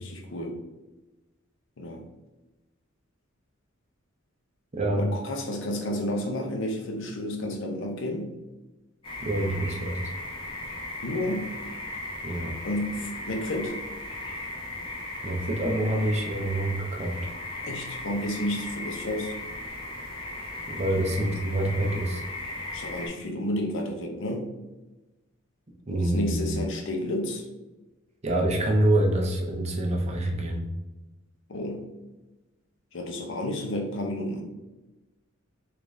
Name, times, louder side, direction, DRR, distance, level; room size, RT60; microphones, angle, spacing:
voice 1, 0.1-0.6 1.8-2.0 4.9-8.3 11.0-11.5 12.6-13.8 17.6-19.3 21.0-21.1 22.7-24.4 25.9-27.4 31.5-31.8 32.9-34.4, left 1 dB, 65° left, 3 dB, 0.6 m, -31 dB
voice 2, 4.7-5.0 9.2-10.0 12.2-12.6 15.2-17.2 20.7-22.2 25.9-26.6 28.2-30.6, right 1 dB, 35° right, 1 dB, 0.6 m, -26 dB
sound 1, 9.0-23.1, left 2 dB, 25° left, 1.0 m, -37 dB
3.7 x 2.5 x 3.1 m, 1.1 s
head